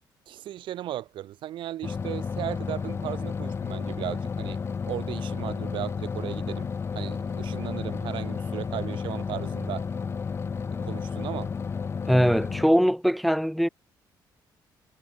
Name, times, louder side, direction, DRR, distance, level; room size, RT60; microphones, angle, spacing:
voice 1, 0.3-4.6 4.8-6.7 7.0-9.9 10.8-11.5, right 13 dB, 80° right, 5.3 m, -36 dB
sound 1, 1.8-12.6, left 5 dB, 30° left, 0.7 m, -32 dB
voice 2, 12.1-13.7, equal, ahead, 1.1 m, -21 dB
cardioid pair, 120°, 8 cm